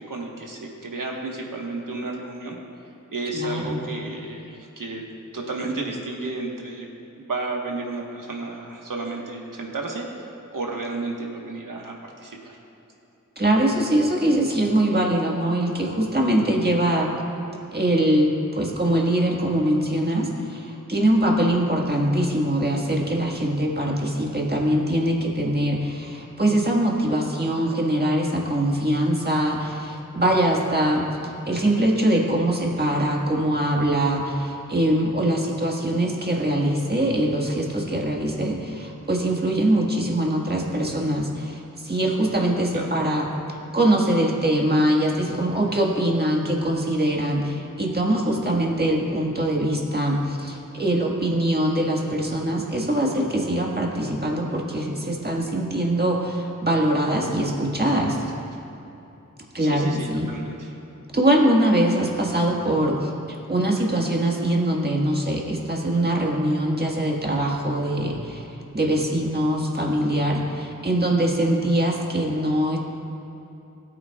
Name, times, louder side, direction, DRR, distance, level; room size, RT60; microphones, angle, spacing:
voice 1, 0.0-2.6 3.1-5.0 5.3-6.9 7.2-12.6 42.7-42.9 59.6-60.8, right 2 dB, 80° right, 0 dB, 1.3 m, -32 dB
voice 2, 3.3-3.8 13.4-17.1 17.7-31.1 31.5-58.2 59.5-60.3 61.1-68.5 68.7-72.8, right 1 dB, 30° right, -1 dB, 1.6 m, -23 dB
17.0 x 8.5 x 2.3 m, 2.9 s
wide cardioid pair, 60°, 32 cm